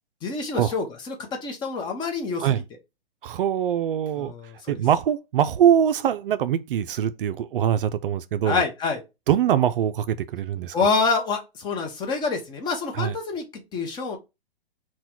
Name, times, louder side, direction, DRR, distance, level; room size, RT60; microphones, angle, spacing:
voice 1, 0.2-2.6 4.2-4.7 8.4-9.0 10.7-14.2, left 4 dB, 15° left, 0.7 m, -27 dB
voice 2, 3.2-4.3 4.7-8.6 9.3-10.8 12.9-13.1, right 9 dB, 60° right, 0.4 m, -23 dB
4.0 x 2.2 x 4.3 m
hypercardioid pair, 140°, 31 cm